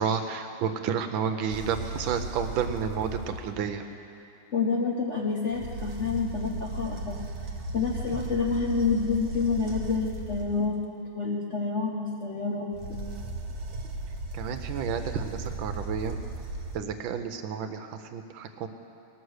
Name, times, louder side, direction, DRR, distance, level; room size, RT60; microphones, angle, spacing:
voice 1, 0.0-3.8 14.3-16.2 16.7-18.7, right 7 dB, 75° right, 7 dB, 1.3 m, -31 dB
sound 1, 1.5-3.6 5.5-10.7 12.7-16.8, right 2 dB, 55° right, 1.3 m, -36 dB
voice 2, 4.5-7.1 7.7-10.8 11.1-12.7, left 4 dB, 55° left, -2 dB, 0.8 m, -28 dB
19.0 x 6.6 x 6.4 m, 2.6 s
omnidirectional pair, 2.3 m